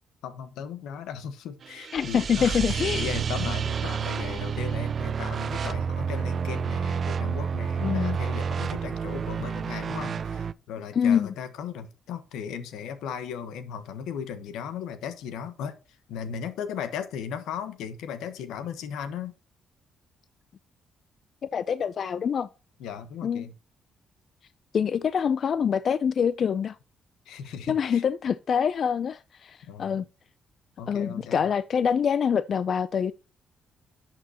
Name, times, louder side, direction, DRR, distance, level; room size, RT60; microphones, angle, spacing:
voice 1, 0.2-15.8 16.1-19.3 22.8-23.5 27.3-28.0 29.7-30.0 30.8-31.4, left 7 dB, 90° left, 1.1 m, -37 dB
sound 1, 1.6-10.5, right 6 dB, 50° right, 0.4 m, -29 dB
voice 2, 1.9-3.1 7.8-8.2 10.9-11.3 21.4-22.5 23.2-23.5 24.7-26.8 27.7-30.1 30.9-33.1, left 7 dB, 55° left, 0.3 m, -25 dB
11.0 x 5.9 x 2.9 m
cardioid pair, 90°, 0 cm